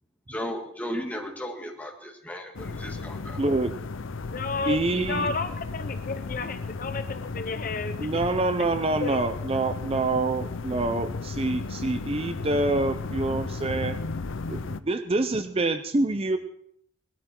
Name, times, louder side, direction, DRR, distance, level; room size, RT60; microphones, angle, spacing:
voice 1, 0.3-3.4, equal, 10° left, 1 dB, 1.9 m, -35 dB
sound 1, 2.5-14.8, left 4 dB, 85° left, 0.6 m, -34 dB
voice 2, 3.4-3.7 4.7-5.3 8.0-14.0 14.5-16.4, right 2 dB, 30° right, 9 dB, 0.6 m, -26 dB
voice 3, 4.3-8.1 8.6-8.7 9.0-9.2, left 4 dB, 45° left, 10 dB, 0.7 m, -32 dB
18.5 x 12.5 x 4.4 m, 0.70 s
head